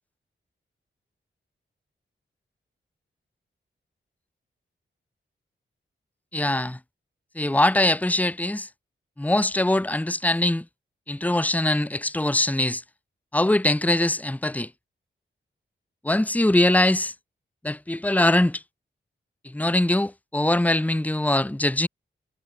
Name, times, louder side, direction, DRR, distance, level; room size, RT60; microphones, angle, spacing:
voice 1, 6.3-6.8 7.4-8.7 9.2-10.6 11.1-12.8 13.3-14.7 16.0-17.1 17.6-18.6 19.4-21.9, left 1 dB, 5° left, 0.9 m, -22 dB
cardioid pair, 60°, 21 cm